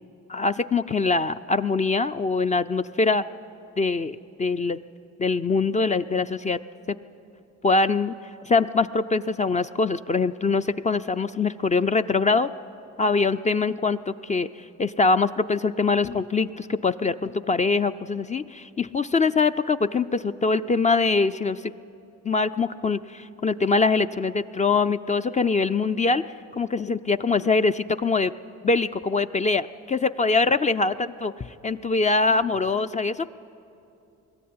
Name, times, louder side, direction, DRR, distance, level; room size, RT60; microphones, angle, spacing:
voice 1, 0.3-3.2 3.8-4.8 5.2-6.6 6.9-7.0 7.6-8.1 8.4-12.5 13.0-21.7 22.2-26.2 26.5-28.3 28.6-33.3, left 4 dB, 25° left, 10 dB, 0.4 m, -23 dB
21.0 x 13.5 x 9.5 m, 2.7 s
cardioid pair, 90°, 30 cm